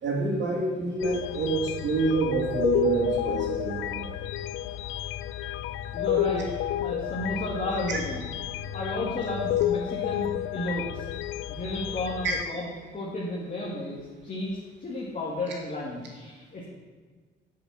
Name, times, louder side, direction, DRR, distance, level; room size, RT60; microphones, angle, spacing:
voice 1, 0.0-4.2 12.2-12.3, right 3 dB, 65° right, -1 dB, 3.1 m, -27 dB
sound 1, 1.0-12.4, left 12 dB, 90° left, 0.4 m, -31 dB
voice 2, 5.9-6.5 6.8-8.3 8.7-11.1 11.5-16.7, left 1 dB, 40° left, -4 dB, 2.2 m, -33 dB
7.9 x 7.7 x 7.5 m, 1.5 s
cardioid pair, 90°, 20 cm